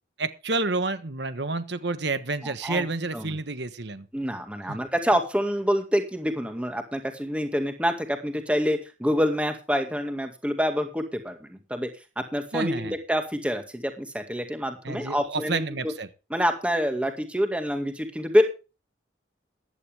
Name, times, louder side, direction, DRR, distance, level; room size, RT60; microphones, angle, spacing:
voice 1, 0.2-4.1 4.7-4.8 12.5-12.9 14.8-16.1, right 3 dB, 65° right, 12 dB, 1.3 m, -29 dB
voice 2, 2.4-2.9 3.1-3.3 4.1-11.9 12.2-15.9 16.3-18.4, equal, 5° right, 6 dB, 2.0 m, -26 dB
15.0 x 11.5 x 3.5 m, 0.32 s
head